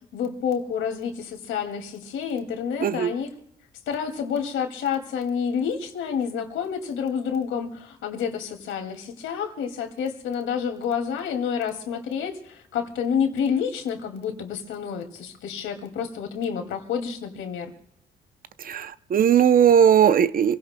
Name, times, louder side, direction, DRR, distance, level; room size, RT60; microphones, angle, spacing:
voice 1, 0.1-3.3 3.9-17.7, left 7 dB, 80° left, 4 dB, 2.3 m, -29 dB
voice 2, 18.6-20.6, right 8 dB, 45° right, 14 dB, 0.6 m, -18 dB
27.5 x 17.0 x 2.2 m, 0.70 s
cardioid pair, 90°, 20 cm